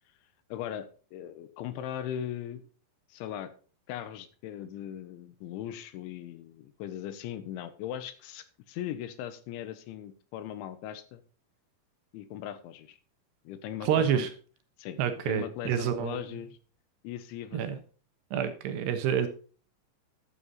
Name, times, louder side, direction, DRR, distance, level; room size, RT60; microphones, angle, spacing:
voice 1, 0.5-2.6 3.1-3.5 3.9-11.2 12.1-13.0 13.5-14.3 14.8-15.0 15.3-16.6 17.0-17.8, left 10 dB, 90° left, 12 dB, 3.5 m, -39 dB
voice 2, 13.9-14.3 15.0-16.2 17.5-17.8 18.3-19.3, right 8 dB, 70° right, 9 dB, 3.2 m, -28 dB
12.5 x 8.6 x 4.1 m, 0.38 s
omnidirectional pair, 5.2 m